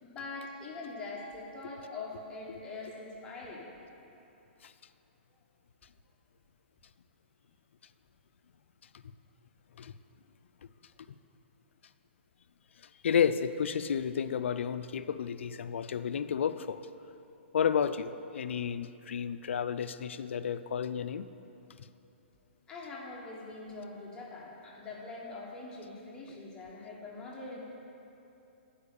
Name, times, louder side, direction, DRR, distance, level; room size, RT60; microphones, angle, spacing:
voice 1, 0.0-3.7 22.7-27.6, left 3 dB, 10° left, -4 dB, 1.1 m, -43 dB
voice 2, 13.0-16.8 17.5-21.3, left 7 dB, 75° left, 12 dB, 0.3 m, -31 dB
8.6 x 4.9 x 6.7 m, 2.9 s
hypercardioid pair, 160°, 6 cm